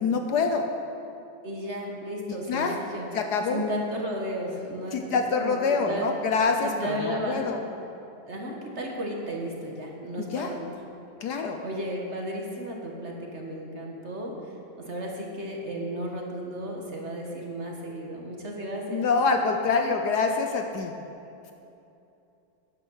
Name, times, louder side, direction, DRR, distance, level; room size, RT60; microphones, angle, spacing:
voice 1, 0.0-0.7 2.5-2.8 3.1-3.6 4.9-7.6 10.2-10.5 11.2-11.6 18.9-20.9, left 4 dB, 65° left, 5 dB, 1.2 m, -26 dB
voice 2, 1.4-3.1 3.5-6.1 6.6-7.5 8.3-10.7 11.6-14.3 14.8-19.1, equal, 40° right, -1 dB, 1.6 m, -34 dB
12.0 x 10.0 x 6.4 m, 2.7 s
omnidirectional pair, 2.1 m